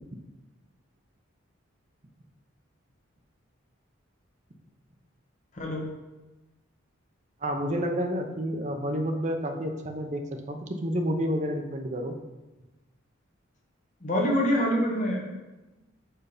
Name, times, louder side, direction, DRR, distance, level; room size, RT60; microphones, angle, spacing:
voice 1, 5.5-5.9 14.0-15.3, equal, 35° left, -2 dB, 1.4 m, -26 dB
voice 2, 7.4-10.2 10.5-12.1, equal, 35° right, 4 dB, 0.7 m, -29 dB
5.6 x 4.5 x 5.0 m, 1.1 s
head